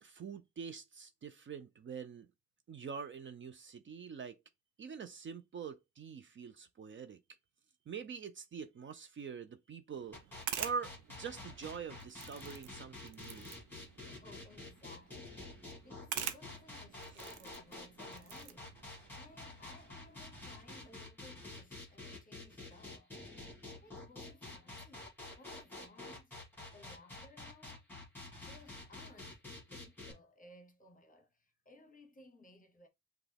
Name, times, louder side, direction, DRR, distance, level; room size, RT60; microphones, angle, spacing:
voice 1, 0.0-2.3 2.7-4.4 4.8-7.2 7.9-10.2 10.6-13.5, right 6 dB, 40° right, 0.5 m, -44 dB
sound 1, 9.9-20.9, right 10 dB, 85° right, 0.6 m, -48 dB
sound 2, 10.1-30.1, left 2 dB, 5° left, 1.7 m, -49 dB
voice 2, 14.1-15.4 15.8-18.8 19.1-23.4 23.8-26.3 26.7-27.8 28.4-32.9, left 2 dB, 25° left, 0.9 m, -60 dB
5.8 x 2.3 x 3.4 m
cardioid pair, 90°, 30 cm